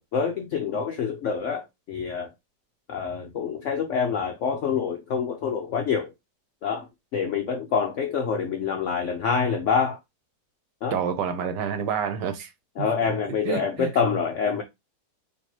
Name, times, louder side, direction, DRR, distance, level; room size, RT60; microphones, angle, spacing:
voice 1, 0.0-2.3 2.9-6.1 6.6-6.9 7.1-10.0 10.8-11.0 12.8-14.6, left 6 dB, 75° left, 0.7 m, -26 dB
voice 2, 10.9-12.5 12.8-12.9 13.4-13.9, right 7 dB, 75° right, 1.4 m, -28 dB
4.4 x 3.0 x 2.9 m
omnidirectional pair, 1.9 m